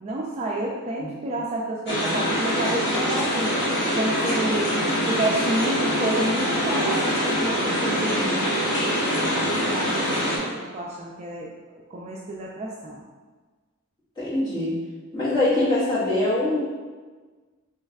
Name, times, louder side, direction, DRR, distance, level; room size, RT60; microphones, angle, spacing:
voice 1, 0.0-3.5 3.9-8.5 9.2-13.0, right 1 dB, 30° right, -2 dB, 0.3 m, -30 dB
sound 1, 1.9-10.4, equal, 55° left, 1.2 m, -24 dB
voice 2, 14.2-14.8 15.1-16.6, left 2 dB, 20° left, -10 dB, 1.3 m, -23 dB
3.3 x 3.1 x 3.4 m, 1.4 s
head